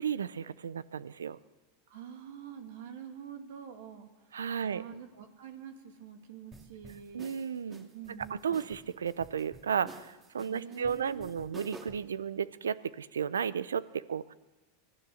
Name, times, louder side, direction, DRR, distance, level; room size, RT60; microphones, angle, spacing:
voice 1, 0.0-1.4 4.3-4.8 7.1-7.9 8.4-14.3, right 7 dB, 85° right, 19 dB, 0.6 m, -33 dB
voice 2, 1.9-7.4 7.9-8.6 10.5-11.6, right 8 dB, 70° right, 6 dB, 2.6 m, -47 dB
sound 1, 6.5-12.1, right 2 dB, 25° right, 2.8 m, -50 dB
24.5 x 16.5 x 6.4 m, 1.1 s
hypercardioid pair, 100°, 0 cm